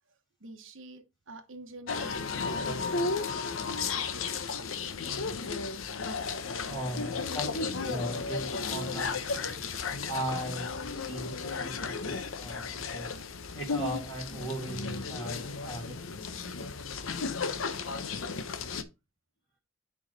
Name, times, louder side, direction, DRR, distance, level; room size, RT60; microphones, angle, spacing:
voice 1, 0.4-3.2 4.5-4.7, right 2 dB, 70° right, 1.2 m, -48 dB
sound 1, 1.9-18.8, left 4 dB, 90° left, 0.8 m, -34 dB
voice 2, 6.6-9.6 10.1-13.1 13.5-16.2, right 1 dB, 25° left, 2.5 m, -38 dB
9.0 x 4.7 x 4.0 m
head